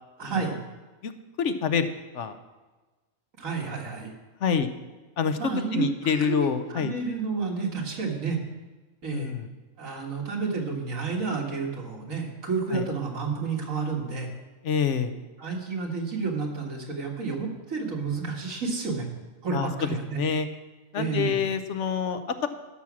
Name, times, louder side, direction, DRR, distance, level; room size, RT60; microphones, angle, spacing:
voice 1, 0.2-0.6 3.4-4.1 5.4-8.4 9.0-9.3 9.8-14.3 15.4-19.1 19.4-20.2 20.9-21.4, right 4 dB, 80° right, 0 dB, 2.2 m, -30 dB
voice 2, 1.4-1.9 2.1-2.3 4.4-4.7 5.2-6.9 9.1-9.5 12.7-12.8 14.6-15.2 19.5-20.5 20.9-22.5, left 7 dB, 65° left, 10 dB, 1.0 m, -27 dB
12.5 x 6.2 x 7.2 m, 1.2 s
omnidirectional pair, 1.4 m